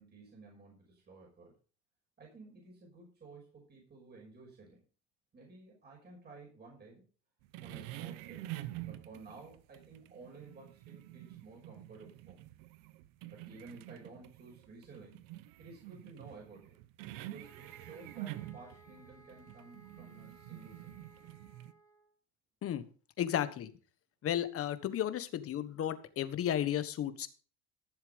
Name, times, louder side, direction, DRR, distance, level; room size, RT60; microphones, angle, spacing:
voice 1, 0.0-1.5 2.2-4.8 5.3-7.0 7.6-8.5 8.8-12.4 13.3-15.2 15.6-16.8 17.2-21.0, right 3 dB, 30° right, -2 dB, 5.8 m, -54 dB
sound 1, 7.4-21.7, right 15 dB, 75° right, 0.9 m, -48 dB
sound 2, 17.4-22.1, right 2 dB, 10° left, 2.1 m, -61 dB
voice 2, 23.2-23.7 24.2-27.3, left 10 dB, 40° left, 12 dB, 1.4 m, -33 dB
14.5 x 7.3 x 5.3 m, 0.38 s
cardioid pair, 120°, 34 cm